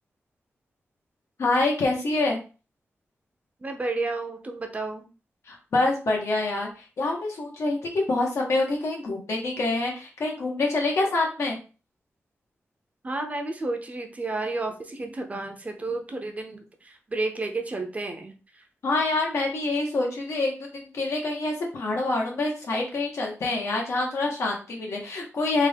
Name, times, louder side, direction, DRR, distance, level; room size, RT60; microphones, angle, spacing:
voice 1, 1.4-2.4 5.5-6.7 7.0-11.6 18.8-25.7, left 2 dB, 80° left, -1 dB, 1.2 m, -26 dB
voice 2, 3.6-5.1 13.0-18.3, right 2 dB, 30° right, 4 dB, 0.6 m, -31 dB
3.5 x 2.4 x 3.4 m, 0.34 s
wide cardioid pair, 130°, 5 cm